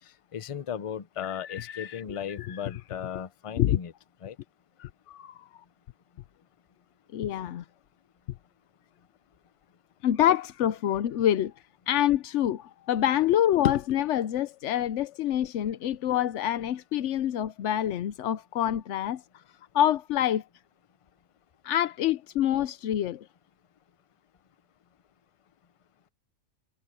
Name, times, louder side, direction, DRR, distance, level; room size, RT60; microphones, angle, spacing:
voice 1, 0.3-3.9 4.2-4.4, left 8 dB, 45° left, 0.4 m, -36 dB
voice 2, 1.2-2.0 2.4-2.6 3.6-3.8 4.8-5.4 7.1-7.6 10.0-11.5 11.9-19.2 19.7-20.4 21.6-23.3, left 11 dB, 65° left, 0.9 m, -26 dB
omnidirectional pair, 1.4 m